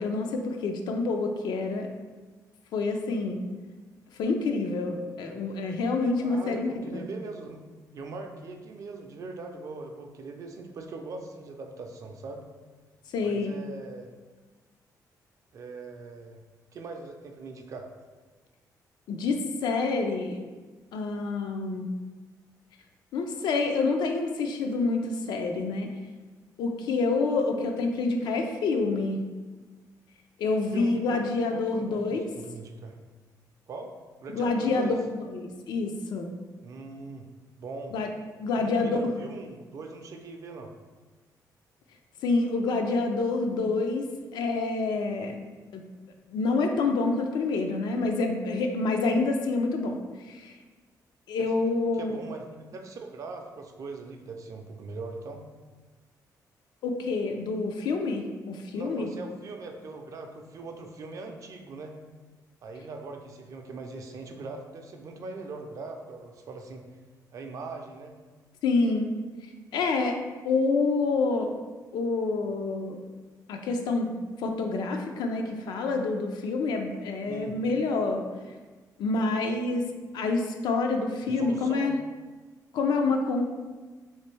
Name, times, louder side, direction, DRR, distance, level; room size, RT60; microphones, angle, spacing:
voice 1, 0.0-1.9 2.7-3.4 4.2-7.0 13.1-13.5 19.1-20.4 20.9-21.9 23.1-25.9 26.6-29.2 30.4-32.2 34.3-36.3 37.9-38.1 38.4-39.0 42.2-44.0 44.3-45.3 45.7-45.8 46.3-50.0 50.3-50.5 51.3-52.2 56.8-59.1 68.6-69.1 69.7-70.2 70.4-71.5 71.9-73.0 73.5-74.1 74.4-78.2 79.0-79.8 80.1-82.0 82.7-83.4, left 3 dB, 85° left, 4 dB, 0.4 m, -27 dB
voice 2, 6.2-7.6 7.9-12.4 13.2-14.1 15.5-16.4 16.7-17.9 30.7-31.2 31.5-33.0 33.7-33.9 34.2-34.9 36.6-37.3 37.6-38.0 38.5-40.7 51.4-51.5 51.9-55.4 58.7-62.0 62.6-66.8 67.3-68.1 77.3-77.6 81.3-82.0, right 3 dB, 50° right, 4 dB, 0.4 m, -41 dB
3.2 x 2.9 x 3.2 m, 1.3 s
cardioid pair, 155°, 7 cm